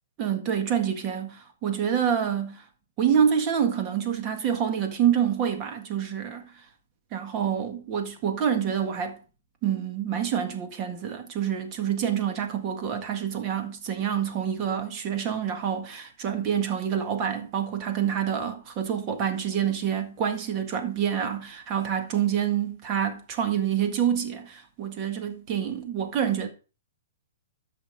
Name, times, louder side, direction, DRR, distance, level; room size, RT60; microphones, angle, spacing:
voice 1, 0.2-2.6 3.0-6.6 7.1-9.2 9.6-26.5, right 8 dB, 35° right, 1.8 m, -27 dB
13.0 x 6.0 x 3.7 m
hypercardioid pair, 140°, 0 cm